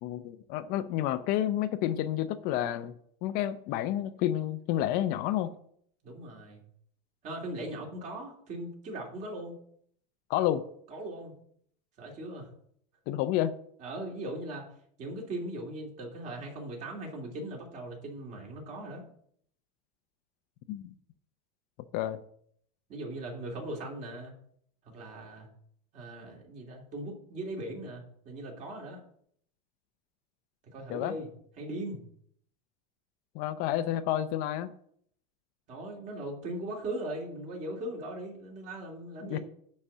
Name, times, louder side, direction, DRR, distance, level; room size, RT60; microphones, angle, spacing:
voice 1, 0.0-2.9 3.2-5.5 10.3-10.6 13.1-13.5 20.7-20.9 21.9-22.2 30.9-31.2 33.3-34.7 39.3-39.4, left 12 dB, 45° left, 11 dB, 0.6 m, -30 dB
voice 2, 6.0-6.6 7.2-9.6 10.9-11.3 12.0-12.5 13.8-14.7 15.0-19.0 22.9-24.3 24.8-25.5 25.9-29.0 30.7-31.3 31.6-32.0 35.7-39.4, right 1 dB, 35° right, 0 dB, 3.1 m, -39 dB
10.0 x 4.3 x 7.4 m, 0.65 s
supercardioid pair, 145°, 21 cm